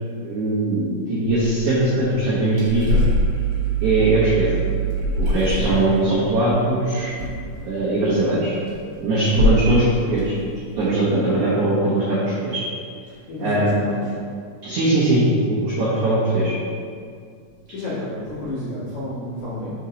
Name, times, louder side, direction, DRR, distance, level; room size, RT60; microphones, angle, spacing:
voice 1, 0.2-3.0 3.8-4.6 5.2-7.1 7.6-8.6 9.0-9.8 10.1-10.3 10.8-12.2 12.4-12.6 13.4-13.8 14.6-16.5, right 2 dB, 80° right, -9 dB, 1.7 m, -20 dB
sound 1, 1.2-8.2 8.5-8.9 9.3-9.8 10.0-11.3, right 1 dB, 60° right, 1.8 m, -24 dB
voice 2, 9.2-9.6 13.1-14.1 17.7-19.7, left 1 dB, 60° left, -12 dB, 2.0 m, -31 dB
6.3 x 4.5 x 4.0 m, 2.3 s
omnidirectional pair, 5.2 m